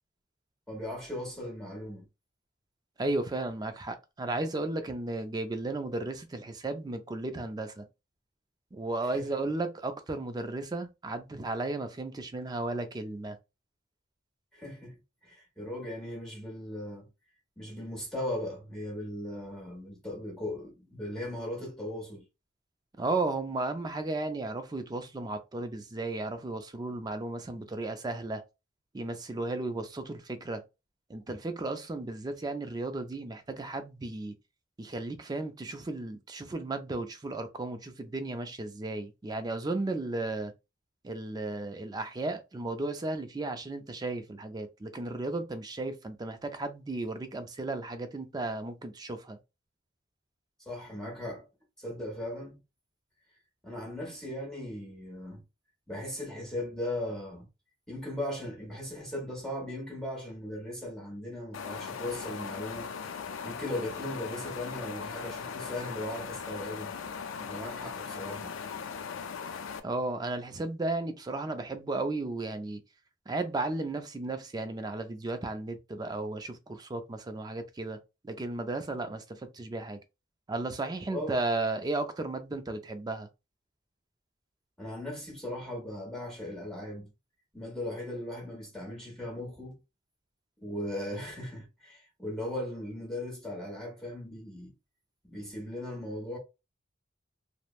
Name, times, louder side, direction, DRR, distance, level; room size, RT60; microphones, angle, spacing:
voice 1, 0.7-2.0 9.0-9.3 14.5-14.9 15.2-17.1 17.6-22.2 50.7-51.5 51.8-52.6 53.6-55.4 55.9-57.5 57.9-62.9 63.4-66.9 67.4-68.5 81.1-81.4 84.8-87.1 87.5-89.8 90.6-94.7 95.2-96.4, left 1 dB, 5° left, 1.0 m, -38 dB
voice 2, 3.0-7.9 8.7-13.4 23.0-28.4 28.9-30.6 31.1-34.4 34.8-40.5 41.0-49.4 69.8-72.8 73.3-80.0 80.5-83.3, right 2 dB, 20° right, 0.4 m, -34 dB
sound 1, 61.5-69.8, left 6 dB, 75° left, 0.4 m, -39 dB
3.2 x 2.1 x 2.3 m
head